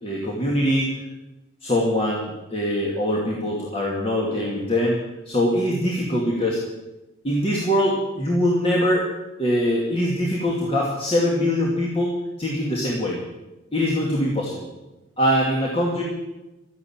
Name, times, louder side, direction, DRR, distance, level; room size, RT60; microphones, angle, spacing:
voice 1, 0.0-1.0 1.6-5.0 5.3-6.6 7.2-9.1 9.4-13.2 13.7-14.7 15.2-16.0, equal, 30° left, -3 dB, 2.4 m, -23 dB
13.5 x 10.5 x 8.9 m, 1.0 s
head